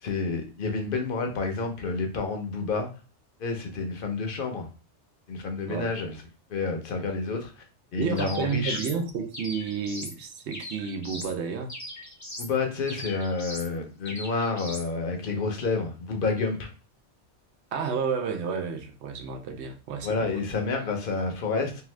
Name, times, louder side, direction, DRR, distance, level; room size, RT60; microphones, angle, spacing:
voice 1, 0.0-2.9 3.4-4.7 5.3-6.2 6.5-7.6 7.9-8.8 12.4-16.7 20.0-21.8, left 4 dB, 55° left, 0.8 m, -29 dB
voice 2, 8.0-11.7 17.7-20.3, right 6 dB, 70° right, 0.9 m, -31 dB
sound 1, 8.2-9.0 9.3-10.2 10.5-11.4 11.7-12.5 12.9-13.7 14.1-14.9, left 1 dB, 25° left, 0.4 m, -40 dB
2.8 x 2.4 x 3.1 m
omnidirectional pair, 1.2 m